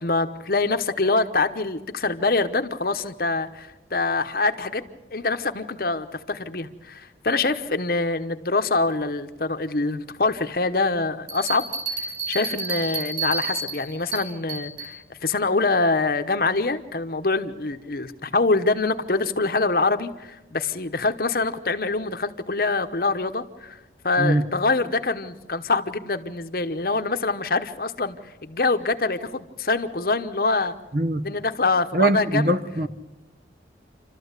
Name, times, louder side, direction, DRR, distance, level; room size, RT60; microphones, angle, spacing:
voice 1, 0.0-4.8 5.1-11.7 12.3-15.0 15.2-23.8 24.0-28.2 28.4-30.7 31.2-32.5, left 3 dB, 55° left, 1.0 m, -25 dB
sound 1, 11.3-15.0, right 4 dB, 25° right, 4.6 m, -31 dB
voice 2, 30.9-31.2 31.9-32.9, right 1 dB, 50° right, 1.0 m, -21 dB
28.5 x 13.0 x 8.2 m
head